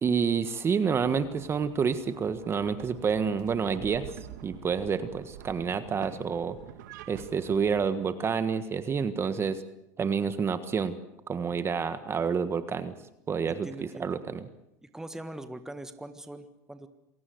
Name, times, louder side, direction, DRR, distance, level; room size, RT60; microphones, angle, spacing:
voice 1, 0.0-4.1 4.4-6.6 7.1-9.6 10.0-11.0 11.3-12.9 13.3-14.5, right 6 dB, 25° right, 12 dB, 1.5 m, -28 dB
sound 1, 0.8-7.9, right 11 dB, 80° right, 2.0 m, -46 dB
voice 2, 13.4-14.2 14.8-16.9, right 1 dB, 5° right, 9 dB, 1.5 m, -42 dB
27.5 x 17.5 x 7.9 m, 0.87 s
supercardioid pair, 120°, 9 cm